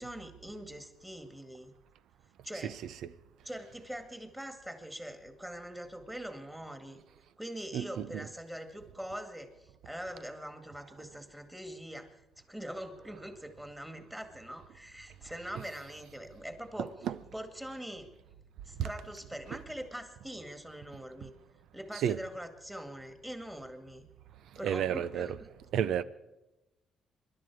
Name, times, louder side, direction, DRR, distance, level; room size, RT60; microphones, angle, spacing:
voice 1, 0.0-1.7 2.4-2.8 3.4-7.0 7.4-12.1 12.4-16.9 17.3-18.1 18.7-21.3 21.7-24.1 24.6-25.5, equal, 5° right, 2.1 m, -43 dB
voice 2, 2.6-3.1 7.7-8.3 15.6-15.7 16.8-17.1 18.8-18.9 19.5-19.6 21.9-22.2 24.6-25.4 25.7-26.0, right 9 dB, 80° right, 0.7 m, -32 dB
25.0 x 11.5 x 4.8 m
cardioid pair, 90°, 0 cm